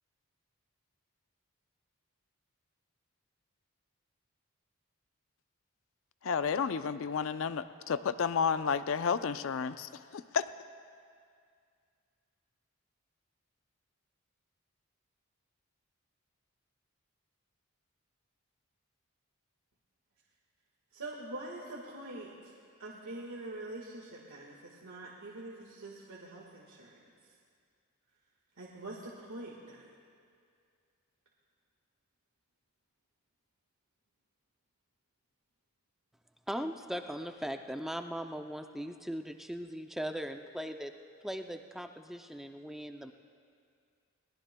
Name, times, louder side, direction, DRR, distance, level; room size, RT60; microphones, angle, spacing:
voice 1, 6.2-10.5, left 6 dB, 65° left, 12 dB, 0.4 m, -31 dB
voice 2, 20.9-22.5 22.8-27.0 28.6-29.9, right 2 dB, 80° right, -4 dB, 1.6 m, -44 dB
voice 3, 36.5-40.9 41.2-43.1, equal, ahead, 6 dB, 0.4 m, -39 dB
22.5 x 19.0 x 2.2 m, 2.2 s
head